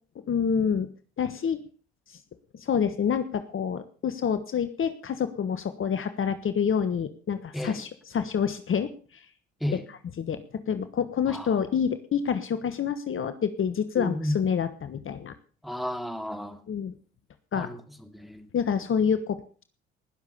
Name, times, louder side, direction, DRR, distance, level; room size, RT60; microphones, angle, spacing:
voice 1, 0.3-0.9 1.2-1.6 2.5-9.2 9.7-9.8 10.2-15.3 16.7-16.9 17.5-17.7 18.5-19.6, left 7 dB, 45° left, 1.4 m, -27 dB
voice 2, 14.0-14.4 15.6-16.6 17.6-17.8 18.1-18.4, left 1 dB, ahead, 2.6 m, -32 dB
19.5 x 7.3 x 6.8 m
hypercardioid pair, 60°, 30 cm